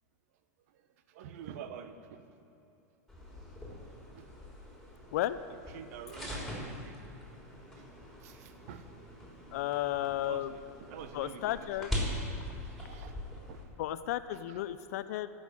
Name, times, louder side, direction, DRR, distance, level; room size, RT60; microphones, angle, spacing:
voice 1, 0.7-2.2 4.1-4.6 5.7-7.0 8.2-8.9 10.2-11.7 12.6-13.1 13.5-13.6 14.5-14.6, right 8 dB, 65° right, 9 dB, 0.9 m, -48 dB
sound 1, 3.1-13.6, left 1 dB, ahead, 3.6 m, -42 dB
voice 2, 9.5-10.5 11.1-11.9 13.8-15.3, left 13 dB, 65° left, 13 dB, 0.5 m, -33 dB
13.5 x 6.3 x 9.8 m, 2.9 s
hypercardioid pair, 115°, 9 cm